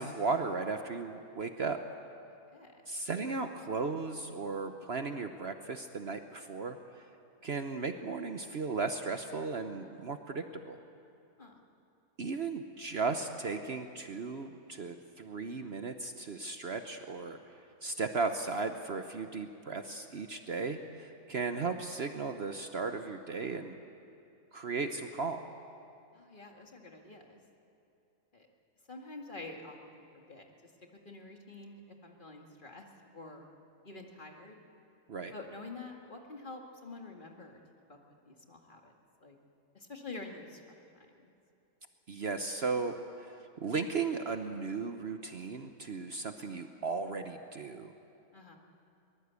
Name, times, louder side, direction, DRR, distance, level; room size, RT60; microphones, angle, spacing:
voice 1, 0.0-1.8 2.9-6.8 7.4-10.8 12.2-23.8 24.5-25.4 35.1-35.3 42.1-47.9, right 4 dB, 50° right, 7 dB, 1.0 m, -36 dB
voice 2, 26.1-27.4 28.3-28.5 28.9-30.7 31.0-32.9 33.1-33.5 33.8-34.6 35.3-37.6 37.9-38.0 38.3-38.9 39.2-39.4 39.7-40.6 40.9-41.3 48.3-48.6, left 3 dB, 35° left, 2 dB, 2.1 m, -47 dB
22.5 x 20.5 x 8.3 m, 2.7 s
omnidirectional pair, 1.5 m